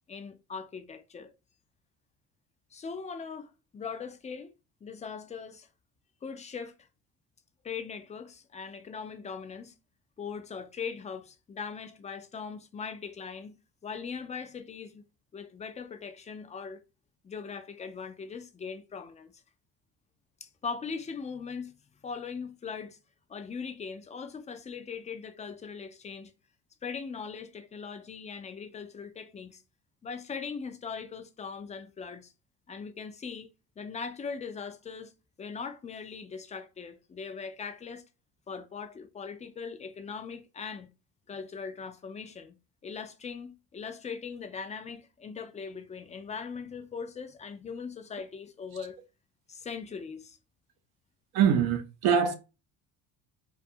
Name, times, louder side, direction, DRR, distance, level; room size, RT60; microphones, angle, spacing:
voice 1, 0.1-1.3 2.7-4.5 4.8-5.7 6.2-6.7 7.6-9.7 10.2-13.6 13.8-15.0 15.3-16.8 17.2-19.3 20.4-21.7 22.0-23.0 23.3-26.3 26.8-29.6 30.0-32.3 32.7-33.5 33.8-35.1 35.4-38.0 38.5-40.9 41.3-42.6 42.8-49.0 49.5-50.4, left 5 dB, 20° left, 0.4 m, -40 dB
voice 2, 51.3-52.3, right 7 dB, 75° right, 0.7 m, -23 dB
2.4 x 2.4 x 2.6 m
cardioid pair, 95°, 37 cm